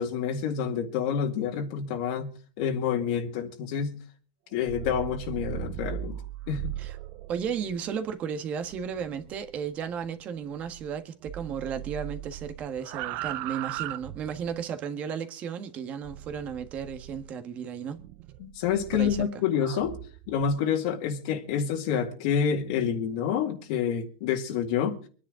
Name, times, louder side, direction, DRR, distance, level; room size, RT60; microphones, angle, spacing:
voice 1, 0.0-4.0 4.5-6.2 6.5-6.7 18.4-20.0 20.3-25.0, left 7 dB, 60° left, 2.1 m, -28 dB
sound 1, 4.5-11.0 11.2-14.6 16.0-17.3 18.0-20.6, right 14 dB, 50° right, 0.7 m, -39 dB
voice 2, 7.3-18.0 18.9-19.3, right 7 dB, 35° right, 1.5 m, -34 dB
25.0 x 10.0 x 3.8 m
supercardioid pair, 145°, 4 cm